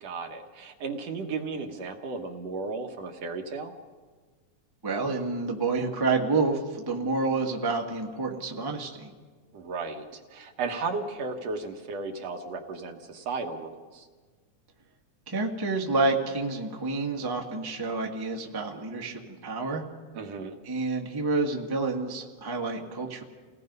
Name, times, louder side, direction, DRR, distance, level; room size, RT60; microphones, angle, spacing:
voice 1, 0.0-3.7 9.5-10.0 10.3-14.1 20.1-20.6, right 4 dB, 60° right, 4 dB, 2.2 m, -34 dB
voice 2, 4.8-9.1 15.3-19.8 20.6-23.2, right 3 dB, 10° right, 0 dB, 1.1 m, -29 dB
29.5 x 18.5 x 5.5 m, 1.4 s
omnidirectional pair, 3.5 m